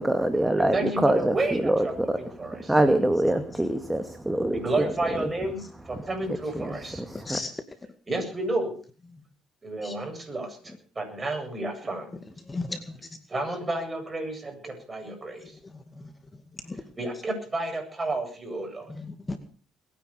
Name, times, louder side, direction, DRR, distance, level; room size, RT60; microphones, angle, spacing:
voice 1, 0.0-5.3 6.3-7.4, right 1 dB, 10° right, 8 dB, 2.2 m, -25 dB
voice 2, 0.6-1.9 2.2-2.7 4.5-5.6 5.9-7.0 8.1-8.7 9.6-12.1 13.3-15.5 17.0-18.9, right 2 dB, 30° right, 4 dB, 8.0 m, -31 dB
voice 3, 12.5-13.0 16.0-16.1 16.7-16.8 19.0-19.4, left 3 dB, 20° left, 8 dB, 2.3 m, -34 dB
21.5 x 9.9 x 6.8 m, 0.42 s
hypercardioid pair, 65°, 0 cm